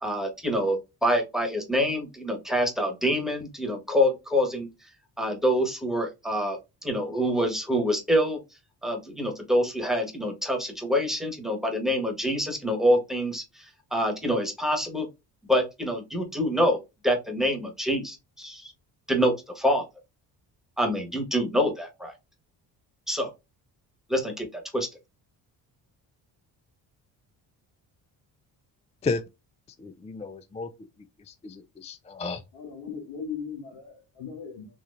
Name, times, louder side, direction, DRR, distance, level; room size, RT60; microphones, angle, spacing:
voice 1, 0.0-4.7 5.2-8.4 8.8-15.1 15.5-18.7 19.1-19.8 20.8-22.1 23.1-23.3 24.1-24.9, equal, ahead, 1.4 m, -26 dB
voice 2, 29.8-30.7 31.3-32.4, left 4 dB, 15° left, 0.3 m, -32 dB
voice 3, 32.5-34.7, left 6 dB, 80° left, 1.6 m, -38 dB
3.9 x 3.0 x 2.5 m
supercardioid pair, 65°, 45 cm